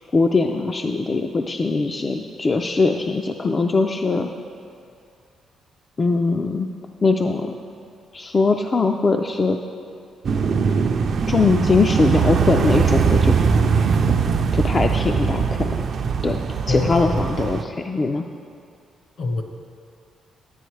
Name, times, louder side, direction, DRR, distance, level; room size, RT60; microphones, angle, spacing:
voice 1, 0.1-4.3 6.0-6.7 7.0-7.5 8.1-9.6 11.3-13.4 14.5-15.9 16.2-16.4 16.7-18.2, left 3 dB, 30° left, 4 dB, 0.3 m, -21 dB
sound 1, 10.2-17.6, right 6 dB, 55° right, 0.4 m, -21 dB
voice 2, 16.7-17.2 19.2-19.4, left 3 dB, 60° left, 4 dB, 1.0 m, -24 dB
10.0 x 9.1 x 3.2 m, 2.4 s
cardioid pair, 120°, 0 cm